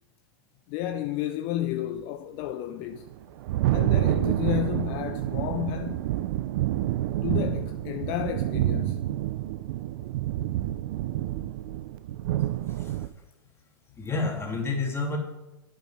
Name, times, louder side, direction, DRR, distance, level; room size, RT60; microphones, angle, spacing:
voice 1, 0.7-3.1 3.7-6.1 7.2-9.1, left 13 dB, 50° left, 0.6 m, -32 dB
Thunder, 2.9-13.1, right 14 dB, 60° right, 0.6 m, -28 dB
voice 2, 12.7-13.1 14.0-15.2, left 3 dB, 20° left, 2.6 m, -30 dB
8.9 x 8.7 x 5.6 m
hypercardioid pair, 105°, 13 cm